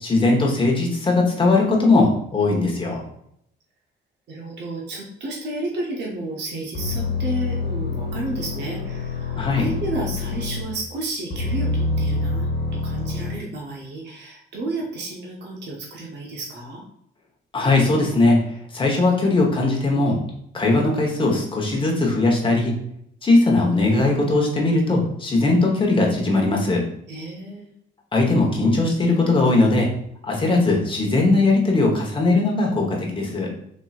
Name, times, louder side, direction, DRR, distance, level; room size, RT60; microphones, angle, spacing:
voice 1, 0.0-3.0 9.4-9.7 17.5-18.4 18.7-20.2 20.5-22.7 23.2-26.8 28.1-29.9 30.2-33.5, left 2 dB, 25° left, -1 dB, 1.1 m, -19 dB
voice 2, 4.3-16.8 27.1-27.7, right 2 dB, 60° right, -2 dB, 0.9 m, -32 dB
sound 1, 6.7-10.9 11.3-13.3, left 3 dB, 60° left, 1.3 m, -26 dB
4.1 x 2.9 x 2.4 m, 0.72 s
cardioid pair, 90°, 20 cm